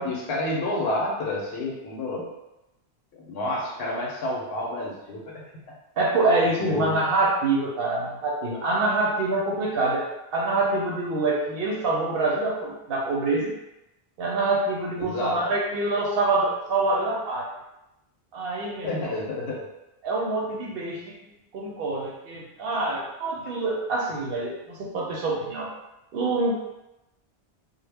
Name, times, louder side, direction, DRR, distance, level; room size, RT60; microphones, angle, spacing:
voice 1, 0.0-2.3 3.1-5.4 6.6-6.9 15.0-15.5 18.8-19.7, left 1 dB, 75° left, -1 dB, 0.8 m, -29 dB
voice 2, 6.0-10.1 10.3-13.5 14.2-17.5 18.3-19.1 20.0-21.1 21.5-25.7 26.1-26.5, right 2 dB, 65° right, -2 dB, 0.7 m, -25 dB
2.0 x 2.0 x 3.3 m, 0.92 s
omnidirectional pair, 1.1 m